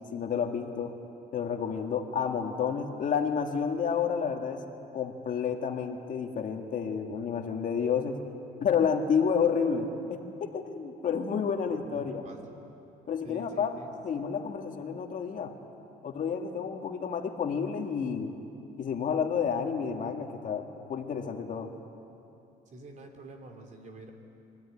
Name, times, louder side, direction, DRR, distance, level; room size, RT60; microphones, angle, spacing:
voice 1, 0.1-0.9 1.3-4.6 4.9-8.2 8.6-12.2 13.1-13.8 14.0-15.5 16.0-18.3 18.8-21.7, left 6 dB, 50° left, 3 dB, 2.1 m, -30 dB
voice 2, 11.7-12.4 13.2-13.9 14.2-14.3 22.7-24.1, right 2 dB, 45° right, 3 dB, 3.4 m, -47 dB
25.0 x 16.0 x 9.9 m, 2.8 s
cardioid pair, 110°, 17 cm